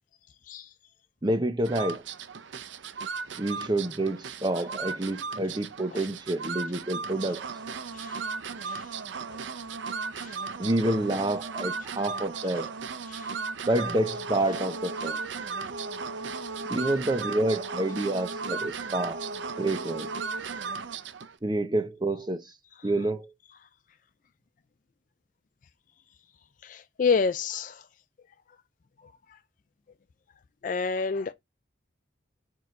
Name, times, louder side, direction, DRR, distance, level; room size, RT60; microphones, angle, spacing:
voice 1, 1.2-2.0 3.4-7.4 10.6-12.7 13.7-15.2 16.7-19.2 19.6-20.1 21.4-22.4 22.8-23.3, right 1 dB, 25° right, 0.7 m, -28 dB
sound 1, 1.6-21.4, right 4 dB, 75° right, 0.6 m, -36 dB
voice 2, 26.6-27.8 30.6-31.3, left 5 dB, 45° left, 0.3 m, -29 dB
4.8 x 4.5 x 5.3 m
head